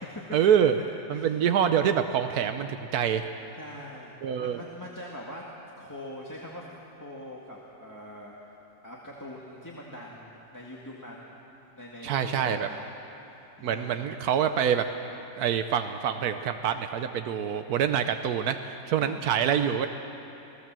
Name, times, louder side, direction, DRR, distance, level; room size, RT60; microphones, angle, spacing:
voice 1, 0.3-0.7 1.1-3.2 4.2-4.6 12.0-12.7 13.6-14.9 15.4-19.9, right 8 dB, 90° right, 8 dB, 1.3 m, -26 dB
voice 2, 3.6-5.4 5.8-6.6 7.0-8.5 8.8-11.3 11.8-12.9 13.2-14.1 19.0-19.2, left 1 dB, 10° left, -4 dB, 2.0 m, -43 dB
29.0 x 18.0 x 7.6 m, 2.9 s
omnidirectional pair, 1.6 m